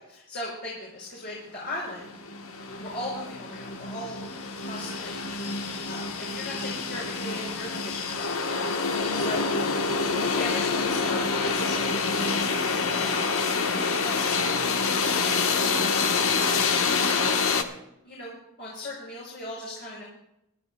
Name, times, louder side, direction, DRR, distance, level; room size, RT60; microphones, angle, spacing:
voice 1, 0.0-2.1 2.8-5.3 5.8-8.1 8.5-8.8 9.1-9.5 10.3-13.4 13.9-14.2 14.7-16.8 18.0-20.0, left 1 dB, 55° left, -5 dB, 5.5 m, -38 dB
sound 1, 1.7-1.8 2.0-17.6, left 4 dB, 70° left, 1.1 m, -27 dB
27.0 x 12.5 x 2.2 m, 0.84 s
head